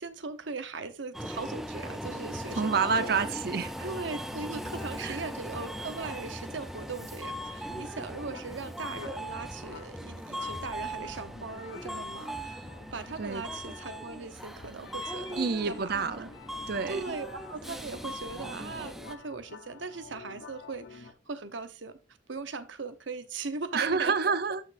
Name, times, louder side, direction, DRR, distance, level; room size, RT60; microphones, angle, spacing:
voice 1, 0.0-3.2 3.8-16.3 16.9-22.0 22.3-24.1, right 4 dB, 85° right, 0.9 m, -39 dB
Subway metro underground, 1.1-19.2, equal, ahead, 0.5 m, -39 dB
sound 1, 2.0-21.1, left 5 dB, 75° left, 0.9 m, -50 dB
voice 2, 2.6-3.9 5.0-5.2 13.2-13.4 15.4-16.3 16.7-17.1 23.7-24.6, right 5 dB, 55° right, 0.6 m, -28 dB
12.0 x 6.1 x 2.6 m
head